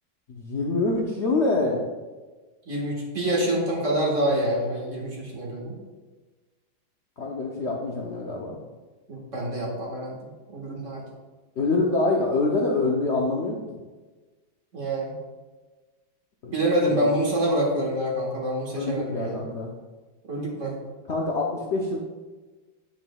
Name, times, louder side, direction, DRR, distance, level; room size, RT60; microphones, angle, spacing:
voice 1, 0.3-1.8 7.2-8.6 11.6-13.8 16.4-16.6 16.9-17.0 18.7-19.7 21.1-22.0, left 3 dB, 85° left, -2 dB, 0.6 m, -25 dB
voice 2, 2.6-5.7 9.1-11.0 14.7-15.2 16.5-19.4 20.3-20.8, right 1 dB, 40° right, -3 dB, 1.7 m, -26 dB
8.8 x 6.8 x 2.3 m, 1.3 s
omnidirectional pair, 2.2 m